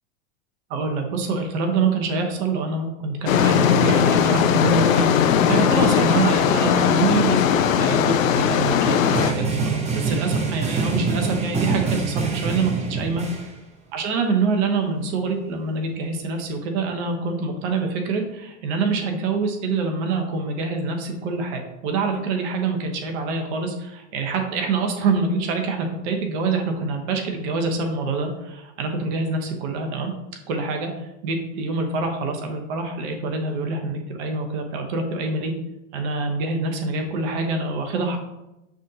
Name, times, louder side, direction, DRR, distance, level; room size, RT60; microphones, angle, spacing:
voice 1, 0.7-13.2 13.9-30.1 30.5-35.5 35.9-38.2, right 4 dB, 60° right, 4 dB, 1.1 m, -25 dB
sound 1, 3.3-9.3, left 8 dB, 85° left, 0.5 m, -19 dB
sound 2, 9.1-13.5, right 4 dB, 15° right, 0.6 m, -25 dB
6.0 x 2.6 x 2.8 m, 0.93 s
hypercardioid pair, 105°, 39 cm